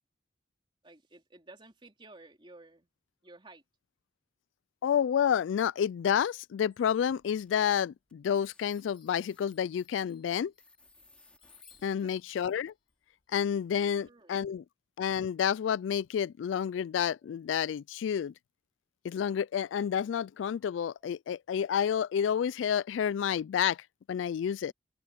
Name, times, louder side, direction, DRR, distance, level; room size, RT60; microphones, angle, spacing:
voice 1, 0.8-2.9 3.2-3.6 11.8-12.1 13.9-14.5, right 2 dB, 25° right, 3.4 m, -54 dB
voice 2, 4.8-10.5 11.8-12.7 13.3-14.6 15.0-18.3 19.0-24.7, left 8 dB, 90° left, 0.3 m, -29 dB
sound 1, 6.7-7.5 8.1-8.2 8.4-12.7, left 2 dB, 5° left, 6.0 m, -64 dB
Chime, 7.2-7.9 8.2-14.1, left 7 dB, 30° left, 3.7 m, -64 dB
open air
head